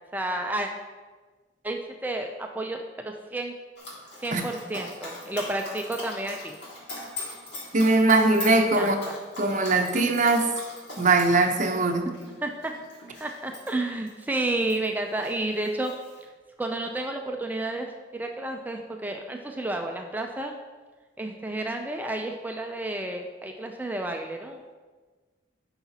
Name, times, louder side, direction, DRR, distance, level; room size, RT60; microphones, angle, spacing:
voice 1, 0.1-0.7 1.6-3.5 4.2-6.5 8.5-9.2 12.0-12.1 12.4-12.7 13.2-15.9 16.6-20.5 21.2-24.8, right 2 dB, 10° right, 3 dB, 0.4 m, -31 dB
Dog, 3.8-14.9 15.2-16.2, left 1 dB, 75° left, 2.0 m, -41 dB
voice 2, 7.7-9.0 9.4-10.5 11.0-12.1, right 3 dB, 45° right, 5 dB, 0.7 m, -21 dB
9.6 x 5.8 x 2.8 m, 1.3 s
head